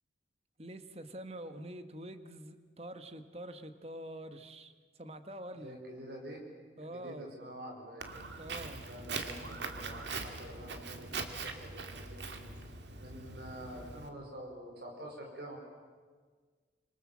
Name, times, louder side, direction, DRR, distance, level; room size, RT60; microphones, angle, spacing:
voice 1, 0.6-4.7 5.0-5.8 6.8-7.4 8.4-8.9, right 1 dB, 35° right, 9 dB, 1.5 m, -45 dB
voice 2, 5.6-6.4 6.8-8.1 8.9-12.4 13.0-15.6, right 1 dB, 65° right, 1 dB, 5.2 m, -47 dB
Walk footsteps, 8.0-14.1, right 4 dB, 80° right, 2.3 m, -42 dB
26.0 x 26.0 x 7.6 m, 1.5 s
head